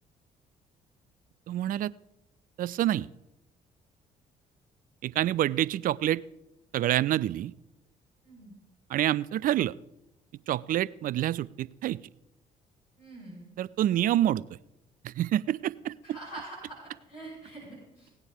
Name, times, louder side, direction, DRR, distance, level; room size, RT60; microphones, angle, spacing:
voice 1, 1.5-1.9 2.6-3.1 5.0-6.2 6.7-7.5 8.9-9.7 10.5-12.0 13.6-14.4 15.0-15.9, right 12 dB, 45° right, 20 dB, 0.4 m, -27 dB
voice 2, 8.2-8.6 13.0-13.5 16.0-18.1, right 2 dB, 80° left, -5 dB, 5.7 m, -45 dB
16.5 x 9.7 x 3.5 m, 0.86 s
hypercardioid pair, 45°, 20 cm